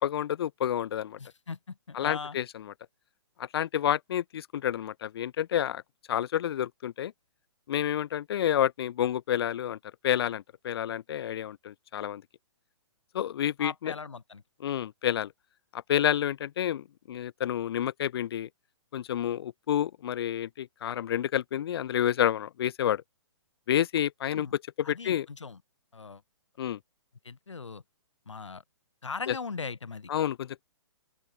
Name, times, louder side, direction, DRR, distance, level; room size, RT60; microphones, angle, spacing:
voice 1, 0.0-1.2 1.9-2.7 3.5-5.8 6.1-7.1 7.7-9.8 10.0-12.2 13.1-13.9 14.6-15.3 15.7-18.5 18.9-23.0 23.7-24.5 24.9-25.3 26.6-26.8 29.3-29.4 30.1-30.6, left 10 dB, 60° left, 1.1 m, -29 dB
voice 2, 1.2-2.4 13.6-14.4 24.3-24.5 24.8-25.6 25.9-26.2 27.2-27.8 28.3-28.6 29.0-30.1, left 4 dB, 90° left, 7.7 m, -39 dB
open air
hypercardioid pair, 140°, 15 cm